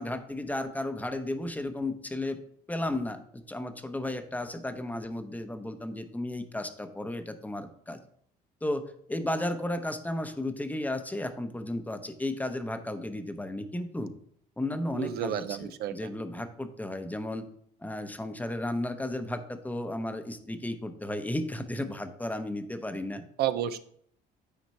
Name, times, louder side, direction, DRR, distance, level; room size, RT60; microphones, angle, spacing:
voice 1, 0.0-2.4 2.7-8.0 8.6-14.1 14.6-17.5 17.8-23.2, left 1 dB, 10° left, 8 dB, 0.8 m, -34 dB
voice 2, 14.9-15.9 23.4-23.8, right 11 dB, 70° right, 12 dB, 0.5 m, -30 dB
9.4 x 4.4 x 4.3 m, 0.63 s
cardioid pair, 110°, 17 cm